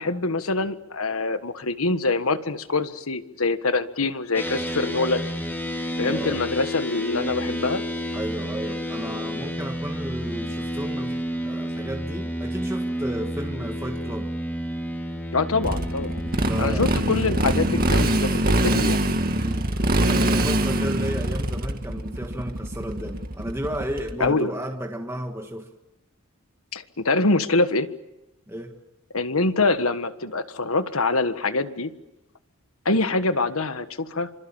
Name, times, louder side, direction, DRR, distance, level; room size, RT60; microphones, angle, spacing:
voice 1, 0.0-5.2 6.0-7.8 15.3-16.1 16.6-19.0 24.2-24.5 26.7-27.9 29.1-31.9 32.8-34.3, left 3 dB, 80° left, 11 dB, 1.5 m, -24 dB
sound 1, 4.3-18.2, equal, 10° left, 3.4 m, -30 dB
voice 2, 6.0-6.5 8.1-14.3 16.4-16.9 19.4-19.8 20.1-25.7 28.5-28.7, equal, 10° right, 3 dB, 1.7 m, -33 dB
Motorcycle, 15.6-24.3, right 1 dB, 45° right, 2.1 m, -23 dB
26.5 x 26.0 x 7.2 m, 0.91 s
head